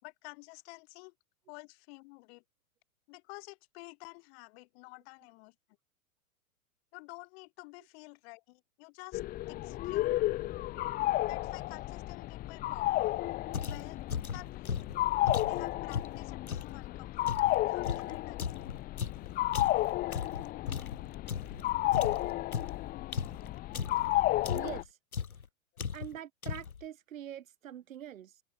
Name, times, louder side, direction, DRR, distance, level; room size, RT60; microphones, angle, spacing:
voice 1, 0.0-1.1 1.5-2.4 3.1-5.5 6.9-9.2 9.5-10.2 11.2-13.2 13.6-14.9 15.4-18.6, left 27 dB, 45° left, 7.5 m, -51 dB
sound 1, 9.1-24.8, left 16 dB, 20° left, 0.8 m, -32 dB
sound 2, 13.5-16.8 17.3-21.6 21.9-24.1 24.4-24.9 25.1-25.5 25.8-26.2 26.4-26.8, left 6 dB, 85° left, 2.4 m, -37 dB
voice 2, 24.5-25.0 25.9-28.4, right 10 dB, 65° right, 5.2 m, -44 dB
hypercardioid pair, 115°, 42 cm